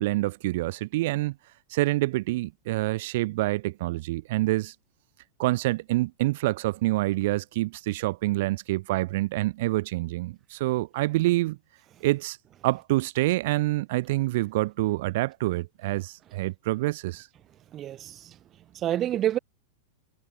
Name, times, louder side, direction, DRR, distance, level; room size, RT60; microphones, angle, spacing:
voice 1, 0.0-1.4 1.7-4.7 5.4-11.6 12.0-12.4 12.6-17.3, right 19 dB, 60° right, 5.5 m, -27 dB
voice 2, 17.7-18.4 18.7-19.4, right 11 dB, 30° right, 6.4 m, -28 dB
supercardioid pair, 135°, 0 cm